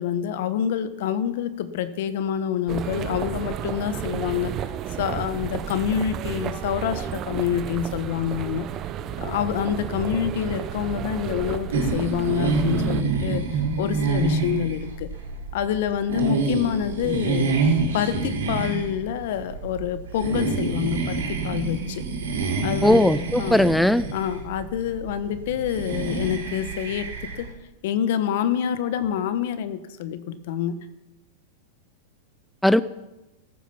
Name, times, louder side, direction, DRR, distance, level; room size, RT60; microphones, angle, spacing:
voice 1, 0.0-4.5 5.0-8.7 9.2-15.1 15.5-17.6 17.9-22.0 22.6-23.1 23.4-23.6 24.1-27.5 27.8-30.8, left 9 dB, 65° left, 13 dB, 1.1 m, -27 dB
sound 1, 2.7-13.0, right 10 dB, 35° right, 0.9 m, -32 dB
sound 2, 11.7-27.5, right 4 dB, 85° right, 4.5 m, -27 dB
voice 2, 22.8-24.0 32.6-32.8, left 1 dB, ahead, 16 dB, 0.4 m, -18 dB
14.5 x 12.5 x 5.8 m, 1.0 s
hypercardioid pair, 110°, 0 cm